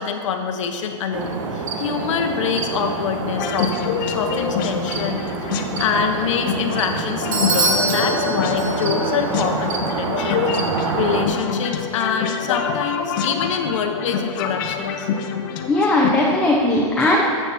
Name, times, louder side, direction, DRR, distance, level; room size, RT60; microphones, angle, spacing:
voice 1, 0.0-10.4 11.0-15.1, left 6 dB, 70° left, 4 dB, 1.0 m, -25 dB
sound 1, 1.1-11.3, right 4 dB, 70° right, 1.3 m, -27 dB
sound 2, 3.3-16.1, left 6 dB, 40° left, 0.7 m, -26 dB
Bell / Doorbell, 7.3-9.2, right 2 dB, 40° right, 2.5 m, -24 dB
voice 2, 15.7-17.3, left 1 dB, 5° left, -5 dB, 0.7 m, -18 dB
13.5 x 7.1 x 4.2 m, 2.6 s
supercardioid pair, 170°, 17 cm